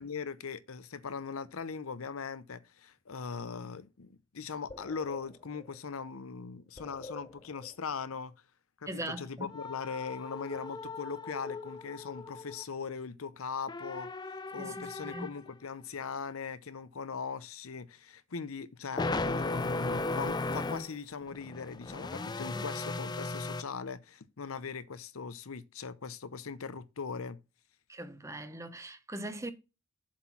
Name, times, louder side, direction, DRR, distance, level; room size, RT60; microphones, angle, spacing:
voice 1, 0.0-8.3 8.8-14.1 14.5-27.4, left 5 dB, 80° left, 0.7 m, -40 dB
sound 1, 4.7-5.2 5.6-5.8 6.8-7.7 9.5-12.6 13.7-15.5 19.0-20.9 21.2-23.6, left 2 dB, 20° left, 0.4 m, -37 dB
voice 2, 8.9-9.5 14.6-15.3 22.5-22.6 27.9-29.5, right 1 dB, 15° right, 0.9 m, -40 dB
7.3 x 4.4 x 5.8 m
head